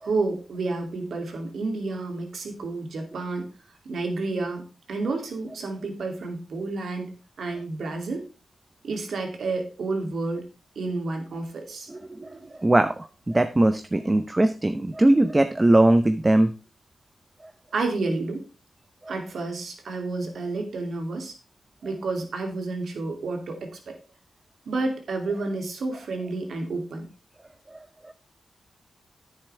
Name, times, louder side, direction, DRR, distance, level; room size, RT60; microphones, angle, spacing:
voice 1, 0.0-3.5 3.8-8.2 8.8-10.5 10.8-11.9 12.2-12.5 17.7-18.5 19.1-21.3 21.8-23.9 24.7-27.1, right 3 dB, 75° right, 3 dB, 2.7 m, -30 dB
voice 2, 11.9-12.3 12.6-16.5 19.1-19.2 27.7-27.8, right 1 dB, 25° right, 9 dB, 0.8 m, -20 dB
10.5 x 9.7 x 3.4 m, 0.33 s
cardioid pair, 55°, 0 cm